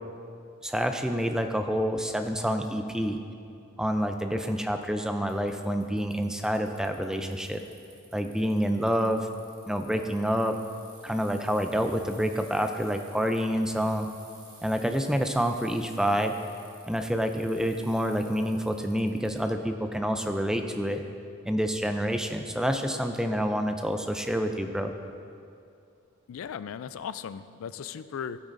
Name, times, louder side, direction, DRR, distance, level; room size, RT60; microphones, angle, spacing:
voice 1, 0.6-3.2 3.8-7.6 8.1-9.3 9.7-10.6 11.0-14.1 14.6-16.3 16.9-21.0 21.5-24.9, equal, 5° right, 6 dB, 0.4 m, -28 dB
Bicycle, 5.3-19.4, right 2 dB, 20° right, 1.6 m, -54 dB
voice 2, 26.3-28.4, left 7 dB, 80° left, 14 dB, 0.3 m, -37 dB
14.0 x 9.5 x 2.6 m, 2.5 s
head